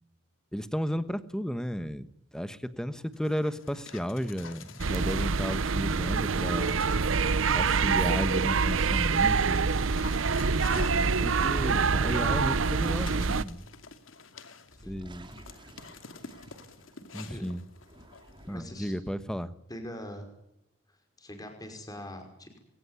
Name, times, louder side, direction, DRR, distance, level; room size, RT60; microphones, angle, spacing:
voice 1, 0.5-2.1 2.3-6.8 7.5-9.9 10.7-13.7 14.9-15.3 17.1-17.6 18.5-19.5, equal, 5° left, 13 dB, 1.2 m, -33 dB
Dog, 3.1-6.0 6.6-7.6 8.2-18.6, left 4 dB, 90° left, 2.6 m, -49 dB
sound 1, 4.8-13.4, right 5 dB, 90° right, 0.8 m, -26 dB
sound 2, 14.7-17.2 17.7-18.9, right 1 dB, 25° right, 2.9 m, -52 dB
voice 2, 17.1-17.5 18.5-18.9 19.7-20.3 21.2-22.5, left 1 dB, 20° left, 5 dB, 5.3 m, -42 dB
22.0 x 18.5 x 9.6 m, 0.85 s
head